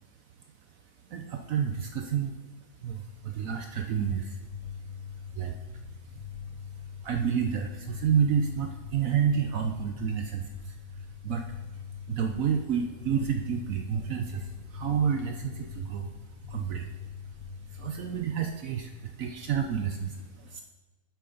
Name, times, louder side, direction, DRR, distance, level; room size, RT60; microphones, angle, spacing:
voice 1, 1.1-2.4 2.8-4.4 5.3-5.6 7.0-10.8 11.2-11.7 12.1-16.1 16.5-16.9 17.7-20.6, right 7 dB, 65° right, 4 dB, 0.9 m, -29 dB
sound 1, 4.4-18.2, left 7 dB, 35° left, 0.8 m, -42 dB
9.9 x 6.9 x 3.9 m, 1.1 s
omnidirectional pair, 1.9 m